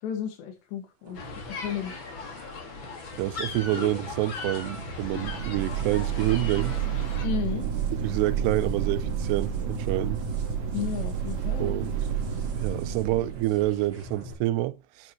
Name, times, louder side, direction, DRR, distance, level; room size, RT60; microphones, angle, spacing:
voice 1, 0.0-2.0 7.2-7.7 10.7-11.7, left 9 dB, 90° left, 4.0 m, -33 dB
sound 1, 1.0-14.3, right 1 dB, 35° right, 3.1 m, -44 dB
sound 2, 1.1-7.3, left 4 dB, 45° left, 1.8 m, -38 dB
voice 2, 3.2-6.8 8.0-10.2 11.6-11.9 12.6-15.1, right 16 dB, 85° right, 2.8 m, -28 dB
sound 3, 4.8-14.1, right 8 dB, 55° right, 2.5 m, -30 dB
9.8 x 8.6 x 3.1 m
omnidirectional pair, 4.8 m